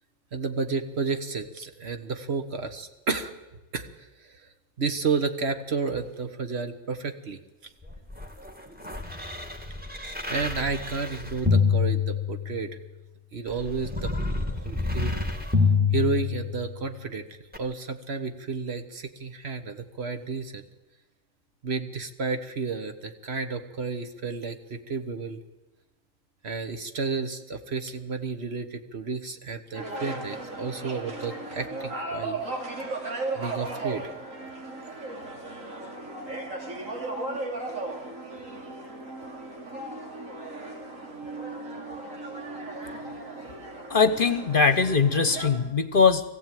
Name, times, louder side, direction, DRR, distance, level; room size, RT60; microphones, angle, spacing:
voice 1, 0.3-3.3 3.7-3.9 4.8-7.4 9.9-12.7 13.3-14.1 14.6-15.1 15.9-17.2 17.6-20.6 21.6-25.4 26.4-32.4 33.3-34.1, right 4 dB, 55° right, 8 dB, 1.5 m, -31 dB
sound 1, 7.8-12.7 13.5-16.8 17.5-17.6, left 5 dB, 5° right, 1.9 m, -27 dB
sound 2, 29.7-45.5, right 2 dB, 85° right, 3.5 m, -36 dB
voice 2, 43.9-46.2, left 5 dB, 45° left, 11 dB, 1.1 m, -21 dB
21.5 x 15.0 x 9.2 m, 1.1 s
omnidirectional pair, 1.3 m